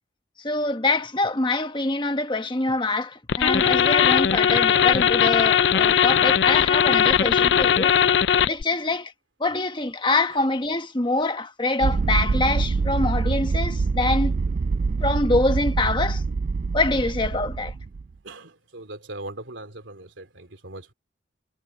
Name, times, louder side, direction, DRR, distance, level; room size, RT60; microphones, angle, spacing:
voice 1, 0.4-7.9 8.4-9.1 9.4-14.3 15.0-16.2 16.7-17.7, left 2 dB, 25° left, 1.2 m, -25 dB
sound 1, 3.3-8.6, left 8 dB, 70° left, 0.4 m, -19 dB
sound 2, 11.8-18.0, right 4 dB, 45° right, 0.3 m, -25 dB
voice 2, 18.2-20.9, right 2 dB, 85° right, 3.1 m, -40 dB
head